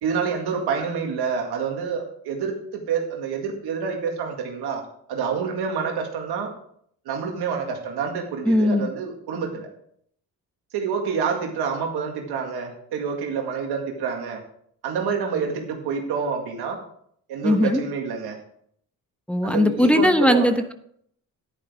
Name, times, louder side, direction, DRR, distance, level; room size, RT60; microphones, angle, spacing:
voice 1, 0.0-4.8 5.1-6.5 7.1-9.7 10.7-14.4 14.8-16.8 17.3-18.4 19.4-20.6, right 6 dB, 90° right, 2 dB, 2.0 m, -27 dB
voice 2, 8.5-8.9 17.4-17.8 19.3-20.7, left 1 dB, 5° left, 6 dB, 1.1 m, -19 dB
10.5 x 10.5 x 3.6 m, 0.66 s
cardioid pair, 70°, 37 cm